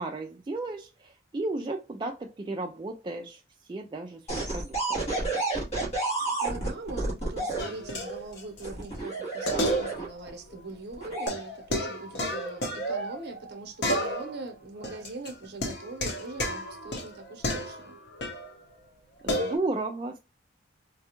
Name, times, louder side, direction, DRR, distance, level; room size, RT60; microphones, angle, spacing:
voice 1, 0.0-5.0 19.2-20.2, right 2 dB, 25° right, 0.3 m, -34 dB
sound 1, 4.3-7.6 8.6-10.3 10.9-11.3, right 2 dB, 35° left, 1.7 m, -30 dB
voice 2, 6.2-18.0, right 2 dB, 55° right, 0.8 m, -41 dB
sound 2, 7.6-8.7 8.9-9.0 9.5-10.3 10.5-10.6 11.3-13.5 13.8-14.5 14.8-18.5 19.3-19.6, equal, 60° left, 0.8 m, -31 dB
4.1 x 2.3 x 2.9 m
head